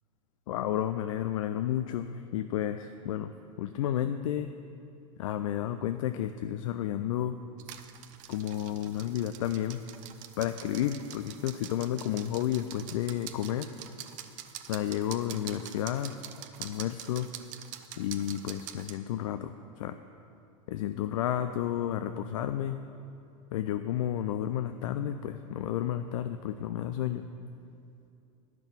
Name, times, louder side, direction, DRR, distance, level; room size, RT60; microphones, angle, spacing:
voice 1, 0.5-3.3 3.6-4.5 5.2-7.4 8.3-9.8 10.4-13.7 14.7-16.2 16.6-17.3 18.0-20.0 20.7-22.8 23.5-27.2, left 11 dB, 75° left, 9 dB, 0.4 m, -31 dB
sound 1, 7.6-19.0, right 11 dB, 50° right, 0.7 m, -45 dB
10.5 x 5.9 x 7.1 m, 2.7 s
hypercardioid pair, 105°, 17 cm